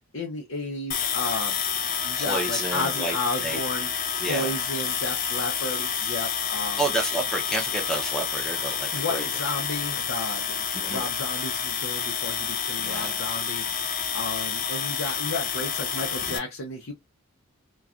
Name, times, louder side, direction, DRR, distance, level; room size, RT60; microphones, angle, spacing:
voice 1, 0.0-1.6 2.0-3.9 4.3-6.8 8.9-16.9, left 2 dB, 75° left, 0.7 m, -33 dB
sound 1, 0.9-16.4, left 7 dB, 45° left, 0.6 m, -29 dB
voice 2, 2.2-3.6 4.2-4.6 6.8-9.3 10.7-11.1 12.8-13.1, right 1 dB, 5° left, 0.7 m, -30 dB
3.1 x 2.3 x 2.4 m
head